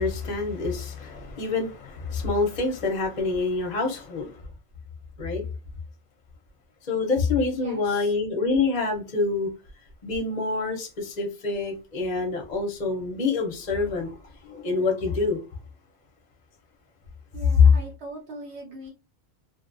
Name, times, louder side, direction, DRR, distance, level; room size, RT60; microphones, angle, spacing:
voice 1, 0.0-4.4 5.2-5.4 6.8-9.5 10.0-15.4, left 3 dB, 45° left, 0.6 m, -27 dB
voice 2, 7.5-8.1 17.3-18.9, right 1 dB, 75° right, 1.2 m, -41 dB
2.5 x 2.2 x 2.5 m
omnidirectional pair, 1.1 m